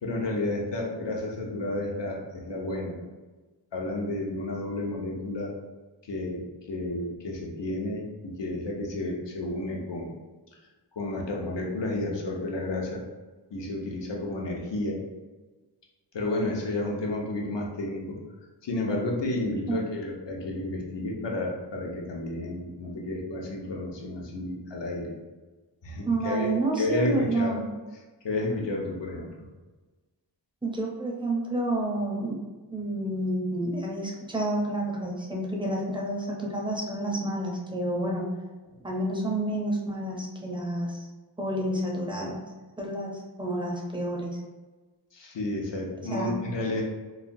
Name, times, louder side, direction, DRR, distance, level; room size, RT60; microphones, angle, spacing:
voice 1, 0.0-3.0 3.7-5.5 6.1-6.4 6.7-10.1 10.9-13.0 13.5-15.0 16.1-18.2 18.6-25.1 25.8-26.5 26.8-27.6 28.2-29.3 38.7-38.9 45.1-46.8, left 2 dB, 70° left, -1 dB, 0.7 m, -31 dB
voice 2, 26.0-27.7 30.6-32.4 32.7-38.3 38.8-41.1 41.4-42.4 42.8-44.4 46.1-46.4, right 1 dB, 10° right, -2 dB, 0.6 m, -29 dB
3.1 x 2.2 x 2.6 m, 1.3 s
wide cardioid pair, 80°, 44 cm